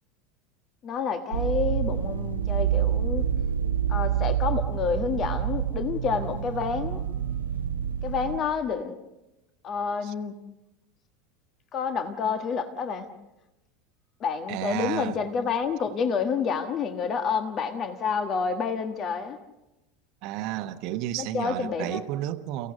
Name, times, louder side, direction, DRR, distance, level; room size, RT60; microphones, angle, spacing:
voice 1, 0.8-3.2 3.9-7.0 8.0-8.9 9.6-10.4 11.7-13.1 14.2-19.4 21.2-22.0, left 6 dB, 35° left, 8 dB, 1.3 m, -29 dB
sound 1, 1.3-8.4, right 9 dB, 75° right, 0.9 m, -27 dB
voice 2, 14.5-15.2 20.2-22.7, right 13 dB, 50° right, 11 dB, 1.1 m, -32 dB
29.5 x 16.5 x 6.6 m, 0.99 s
figure-of-eight pair, 80°, 0 cm